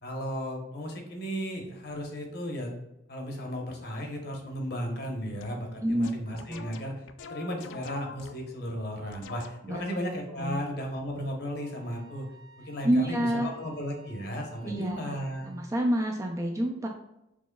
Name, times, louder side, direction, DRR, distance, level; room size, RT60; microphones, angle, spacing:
voice 1, 0.0-2.7 3.1-12.3 12.6-15.5, equal, 50° left, 1 dB, 0.9 m, -35 dB
sound 1, 5.4-5.6 6.0-8.6 9.1-9.9, left 5 dB, 70° left, 0.3 m, -46 dB
Wind instrument woodwind instrument, 11.6-15.8, right 4 dB, 50° right, 0.7 m, -55 dB
voice 2, 12.8-13.5 14.6-15.0 15.5-16.9, right 1 dB, 15° right, 2 dB, 0.3 m, -28 dB
6.2 x 3.0 x 2.2 m, 0.87 s
head